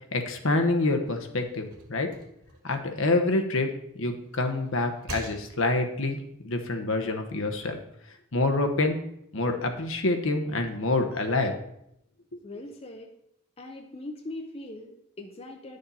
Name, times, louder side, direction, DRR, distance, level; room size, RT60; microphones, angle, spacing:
voice 1, 0.1-2.1 2.6-3.7 4.0-6.2 6.4-7.8 8.3-9.0 9.3-11.5 12.3-12.4, left 2 dB, 60° left, 5 dB, 1.1 m, -26 dB
stove open close, 0.6-3.7 4.2-6.0, right 1 dB, 85° right, 1.9 m, -46 dB
voice 2, 12.4-13.1 13.6-15.8, left 2 dB, 25° left, 3 dB, 0.7 m, -41 dB
10.0 x 6.6 x 4.2 m, 0.77 s
head